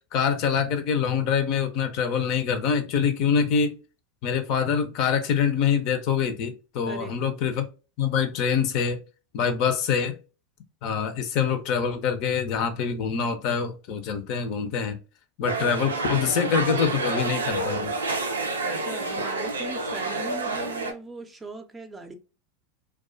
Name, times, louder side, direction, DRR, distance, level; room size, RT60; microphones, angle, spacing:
voice 1, 0.0-3.8 4.2-7.6 8.0-9.0 9.3-10.2 10.8-15.0 15.4-17.9, left 7 dB, 55° left, 0.5 m, -25 dB
voice 2, 6.9-7.2 18.5-22.1, right 3 dB, 20° right, 0.5 m, -39 dB
sound 1, 15.5-20.9, right 3 dB, 85° right, 0.4 m, -29 dB
2.3 x 2.2 x 2.5 m
hypercardioid pair, 90°, 0 cm